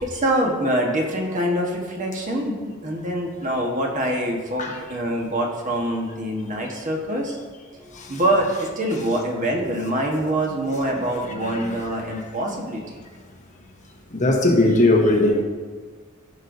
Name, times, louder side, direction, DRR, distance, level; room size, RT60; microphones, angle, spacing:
voice 1, 0.0-7.4 7.7-13.0, right 1 dB, 40° right, 1.3 m, -25 dB
voice 2, 14.1-15.4, left 1 dB, 35° left, 1.1 m, -18 dB
15.0 x 5.4 x 2.7 m
head